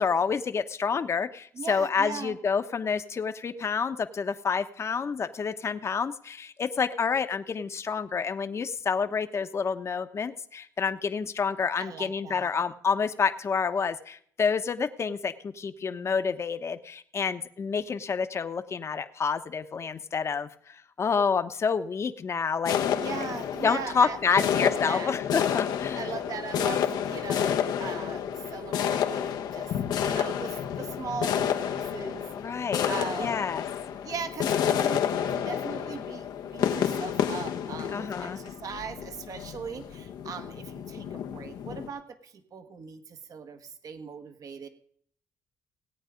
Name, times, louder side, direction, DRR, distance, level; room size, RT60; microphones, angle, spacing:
voice 1, 0.0-22.8 23.6-26.1 32.4-32.9 33.2-33.7 37.9-38.4, left 5 dB, 40° left, 9 dB, 1.0 m, -28 dB
voice 2, 1.5-2.4 11.8-12.5 22.9-25.1 25.9-29.7 30.0-32.3 32.8-33.4 34.0-36.2 36.5-44.7, right 6 dB, 55° right, 9 dB, 1.6 m, -39 dB
sound 1, 22.7-41.9, left 9 dB, 80° left, 1.0 m, -30 dB
17.5 x 8.8 x 5.2 m, 0.62 s
cardioid pair, 90°, 7 cm